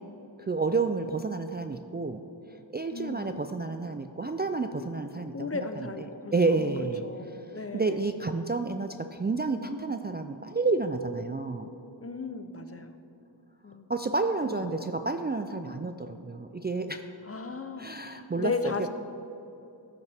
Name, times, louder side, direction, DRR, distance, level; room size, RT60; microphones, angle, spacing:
voice 1, 0.4-2.2 2.7-6.1 6.3-11.7 13.9-17.0 17.8-18.9, right 3 dB, 25° right, 6 dB, 0.3 m, -30 dB
voice 2, 2.9-3.3 5.3-6.7 7.0-8.0 12.0-12.9 13.6-13.9 17.3-18.9, left 4 dB, 30° left, 8 dB, 0.6 m, -35 dB
13.0 x 6.9 x 3.4 m, 2.9 s
wide cardioid pair, 50°, 46 cm